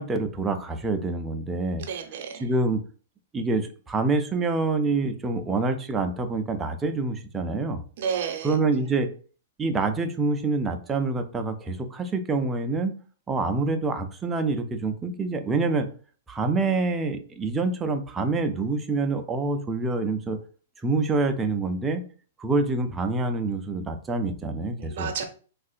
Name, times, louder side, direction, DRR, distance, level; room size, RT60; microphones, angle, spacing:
voice 1, 0.0-1.8 2.4-2.8 3.3-7.8 8.4-9.1 9.6-12.9 13.3-15.9 16.3-20.4 20.8-22.0 22.4-25.2, right 3 dB, 15° right, 6 dB, 0.4 m, -26 dB
voice 2, 1.8-2.5 8.0-8.6 24.8-25.2, right 7 dB, 60° right, 5 dB, 0.7 m, -31 dB
3.6 x 2.4 x 2.4 m, 0.40 s
hypercardioid pair, 135°, 0 cm